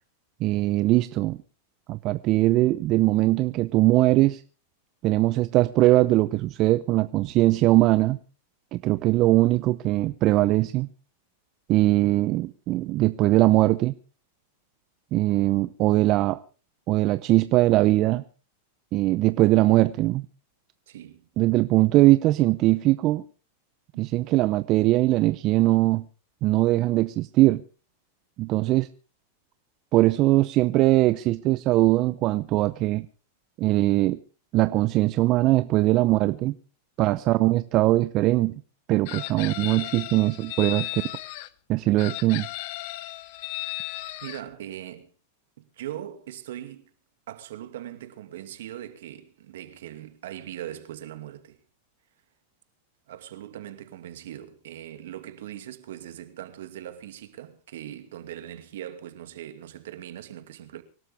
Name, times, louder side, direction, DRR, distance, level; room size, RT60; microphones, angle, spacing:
voice 1, 0.4-1.4 1.9-4.4 5.0-8.2 8.7-10.9 11.7-13.9 15.1-16.4 16.9-18.2 18.9-20.3 21.4-23.2 24.0-26.0 26.4-27.6 28.4-28.9 29.9-33.1 33.6-34.2 34.5-36.5 37.0-38.6 38.9-41.0 41.7-42.5, right 17 dB, 45° right, 0.7 m, -21 dB
voice 2, 20.9-21.3 23.9-24.0 44.2-45.1 45.6-46.9 47.3-51.6 53.1-60.8, right 12 dB, 70° right, 2.3 m, -40 dB
Chicken rooster, 39.1-41.5 42.0-44.4, left 18 dB, 55° left, 1.0 m, -35 dB
25.0 x 12.5 x 3.5 m
hypercardioid pair, 105°, 0 cm